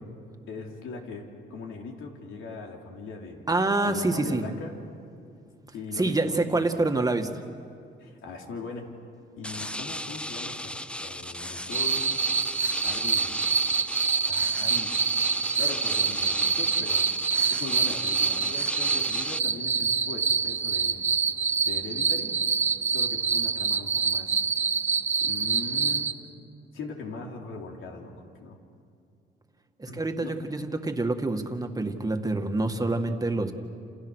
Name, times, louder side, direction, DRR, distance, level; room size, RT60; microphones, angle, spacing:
voice 1, 0.5-3.5 3.8-4.8 5.7-6.7 8.0-8.9 9.4-12.2 12.8-13.4 14.2-15.0 15.6-17.1 17.5-21.0 21.7-22.3 22.9-24.4 25.2-26.1 26.7-28.6 29.9-30.4, left 4 dB, 80° left, 1 dB, 3.7 m, -40 dB
voice 2, 3.5-4.5 5.9-7.3 29.8-33.5, right 2 dB, 20° right, 5 dB, 2.1 m, -26 dB
sound 1, 9.4-19.4, left 1 dB, 5° left, 0.7 m, -36 dB
sound 2, 11.7-26.1, right 5 dB, 35° right, 1.2 m, -26 dB
29.5 x 28.5 x 6.5 m, 2.4 s
cardioid pair, 90°, 20 cm